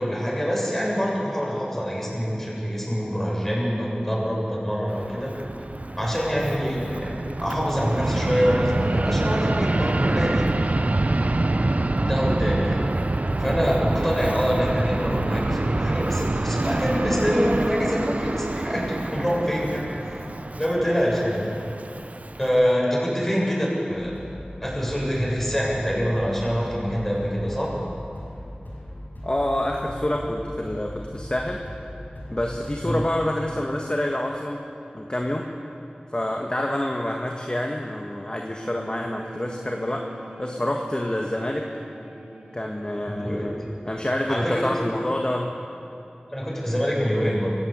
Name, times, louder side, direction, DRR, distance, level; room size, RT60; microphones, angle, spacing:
voice 1, 0.0-5.4 6.0-10.5 12.0-12.8 13.4-20.3 20.6-21.5 22.4-24.1 24.6-27.7 32.8-33.0 43.1-43.5 44.3-44.7 46.3-47.5, equal, 10° left, -4 dB, 7.5 m, -25 dB
Fixed-wing aircraft airplane, 4.9-22.7, right 2 dB, 55° right, 0.7 m, -26 dB
sound 1, 23.9-33.2, left 1 dB, 85° left, 6.3 m, -39 dB
voice 2, 29.2-31.6 32.3-34.6 34.9-35.5 36.1-40.1 40.4-41.7 42.5-43.6 43.8-45.5 47.1-47.3, left 1 dB, 30° left, 1 dB, 1.7 m, -27 dB
sound 2, 38.6-43.7, right 2 dB, 75° right, 4.6 m, -44 dB
25.0 x 15.5 x 8.3 m, 2.7 s
wide cardioid pair, 50°, 3 cm